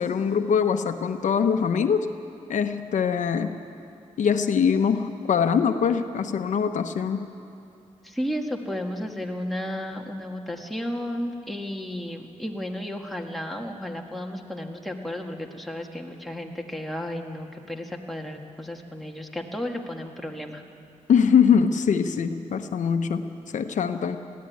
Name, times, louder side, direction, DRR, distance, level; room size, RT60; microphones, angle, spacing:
voice 1, 0.0-2.1 2.5-3.6 4.2-7.3 21.1-24.2, left 7 dB, 70° left, 8 dB, 0.9 m, -23 dB
voice 2, 8.0-20.6, left 1 dB, ahead, 1 dB, 1.9 m, -33 dB
20.5 x 15.0 x 9.4 m, 2.6 s
cardioid pair, 90°, 13 cm